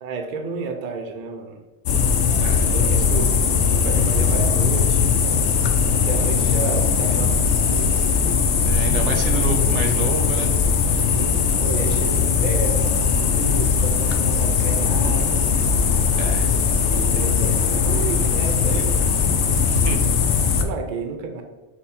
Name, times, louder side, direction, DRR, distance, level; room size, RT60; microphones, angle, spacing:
voice 1, 0.0-1.6 2.6-3.3 3.7-5.1 5.9-8.1 9.1-9.4 11.0-15.5 16.6-19.1 20.5-21.4, right 4 dB, 50° right, 4 dB, 0.6 m, -31 dB
sound 1, 1.9-20.6, left 6 dB, 75° left, 0.9 m, -19 dB
voice 2, 2.4-2.7 8.7-10.5 16.2-16.5 19.7-20.2, right 4 dB, 75° right, 4 dB, 1.0 m, -28 dB
5.7 x 2.1 x 4.3 m, 1.2 s
omnidirectional pair, 1.2 m